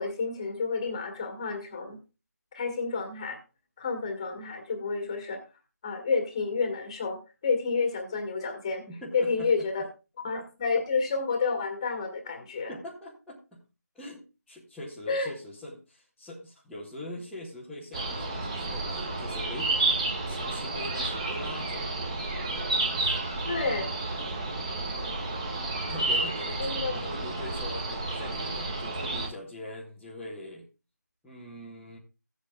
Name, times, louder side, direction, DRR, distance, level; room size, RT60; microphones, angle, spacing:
voice 1, 0.0-2.0 2.5-3.4 3.8-5.4 5.8-7.2 7.4-8.8 9.1-9.9 10.2-12.7 15.1-15.3 23.4-23.9 26.6-26.9, left 4 dB, 15° left, 4 dB, 1.5 m, -30 dB
voice 2, 8.9-9.5 12.7-13.6 13.9-19.7 20.3-22.0 23.0-23.2 24.2-24.3 25.6-30.6 31.2-32.0, left 1 dB, ahead, -12 dB, 0.8 m, -42 dB
sound 1, 17.9-29.3, right 2 dB, 20° right, 1.6 m, -31 dB
16.0 x 8.1 x 2.3 m, 0.30 s
figure-of-eight pair, 170°, 10 cm